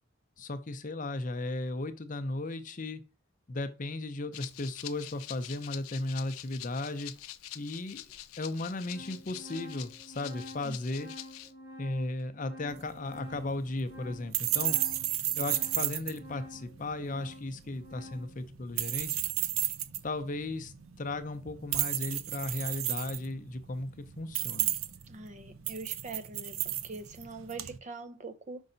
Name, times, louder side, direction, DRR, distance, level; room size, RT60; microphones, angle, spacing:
voice 1, 0.4-3.0 3.5-7.1 7.5-8.0 8.4-11.1 11.8-14.8 15.4-19.2 20.0-24.7, left 2 dB, 40° left, 0.6 m, -36 dB
Rattle (instrument), 4.3-11.5, left 14 dB, 90° left, 0.5 m, -46 dB
Organ, 7.2-7.3 8.1-8.2 8.5-18.4, left 1 dB, 55° right, 2.8 m, -49 dB
sound 1, 12.7-27.8, right 13 dB, 80° right, 0.6 m, -34 dB
voice 2, 25.1-28.6, right 3 dB, 35° right, 0.6 m, -43 dB
5.4 x 5.3 x 3.9 m
head